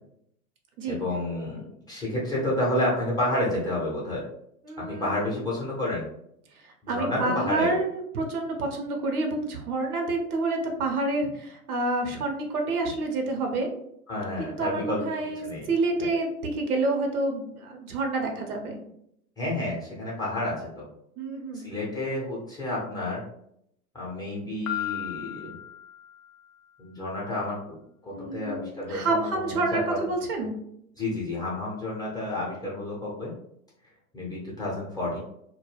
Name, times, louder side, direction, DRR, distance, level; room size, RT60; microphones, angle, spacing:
voice 1, 0.9-4.2 4.9-6.1 6.8-7.8 14.1-15.0 15.4-15.7 19.4-20.8 21.5-23.2 23.9-25.5 26.8-27.8 28.0-30.0 31.0-33.3 34.1-35.2, left 1 dB, 10° left, -6 dB, 0.6 m, -30 dB
voice 2, 4.6-5.3 6.6-13.7 14.4-18.8 21.2-21.7 28.1-30.5, right 2 dB, 70° right, 3 dB, 0.8 m, -28 dB
Piano, 24.7-26.6, left 12 dB, 70° left, 0.6 m, -35 dB
2.2 x 2.1 x 3.2 m, 0.74 s
hypercardioid pair, 105°, 46 cm